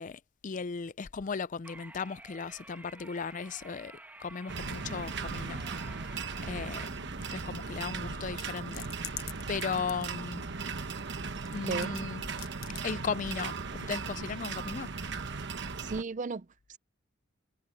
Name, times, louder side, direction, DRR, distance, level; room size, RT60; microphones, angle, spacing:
voice 1, 0.0-5.7 6.4-9.2 9.5-10.4 11.5-12.3 12.8-14.9, left 5 dB, 40° left, 0.4 m, -37 dB
sound 1, 1.6-6.9, right 2 dB, 10° right, 2.1 m, -51 dB
sound 2, 4.5-16.0, right 4 dB, 55° right, 1.2 m, -37 dB
sound 3, 8.4-10.6 11.0-12.0 12.3-12.9 13.3-13.4, left 14 dB, 85° left, 1.0 m, -43 dB
voice 2, 11.6-12.0 15.8-16.8, right 3 dB, 35° right, 0.5 m, -36 dB
head